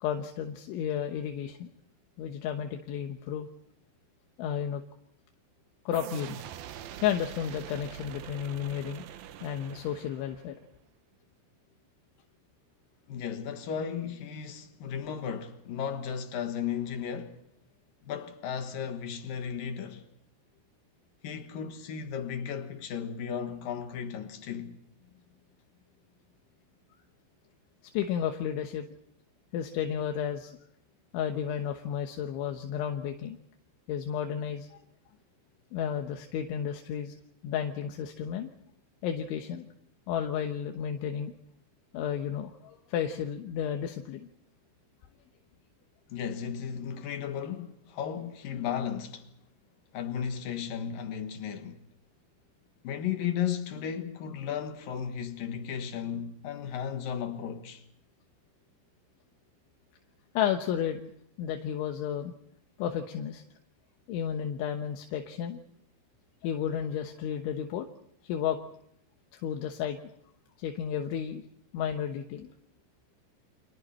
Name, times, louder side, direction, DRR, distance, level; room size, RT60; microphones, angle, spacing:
voice 1, 0.0-1.7 2.2-3.5 4.4-4.8 5.9-6.4 7.0-9.1 9.4-10.6 27.9-28.9 29.5-30.6 31.1-33.4 33.9-34.8 35.7-37.1 37.4-38.5 39.0-39.7 40.1-41.3 41.9-44.3 60.4-61.0 61.4-62.3 62.8-63.4 64.1-65.6 66.4-67.9 68.2-68.6 69.3-70.0 70.6-71.4 71.7-72.5, left 9 dB, 80° left, 3.6 m, -32 dB
sound 1, 5.9-10.6, right 10 dB, 70° right, 2.3 m, -44 dB
voice 2, 13.1-17.4 18.0-20.1 21.2-24.8 46.1-49.3 49.9-51.8 52.8-57.8, left 8 dB, 60° left, 2.6 m, -35 dB
29.5 x 26.0 x 4.4 m
omnidirectional pair, 5.4 m